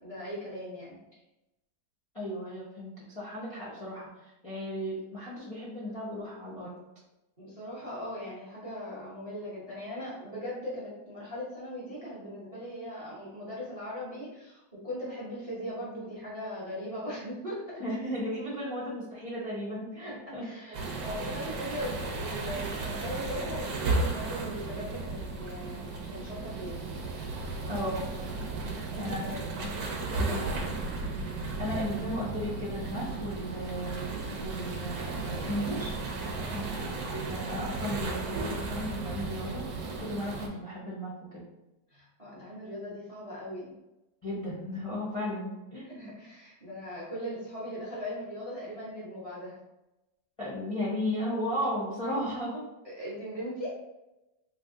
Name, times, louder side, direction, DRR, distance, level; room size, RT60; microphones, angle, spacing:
voice 1, 0.0-1.0 7.4-17.8 20.3-26.8 28.9-29.4 29.9-30.5 36.4-36.7 41.9-43.7 45.8-49.5 52.8-53.8, equal, 35° right, -7 dB, 0.5 m, -39 dB
voice 2, 2.1-6.8 17.8-20.5 27.7-28.0 29.0-29.7 30.2-30.5 31.3-35.9 36.5-39.6 40.0-41.4 44.2-46.1 50.4-52.7, equal, 55° left, -7 dB, 0.3 m, -35 dB
sound 1, 20.7-40.5, right 3 dB, 70° right, 1.0 m, -34 dB
3.3 x 2.3 x 3.7 m, 0.96 s
omnidirectional pair, 2.0 m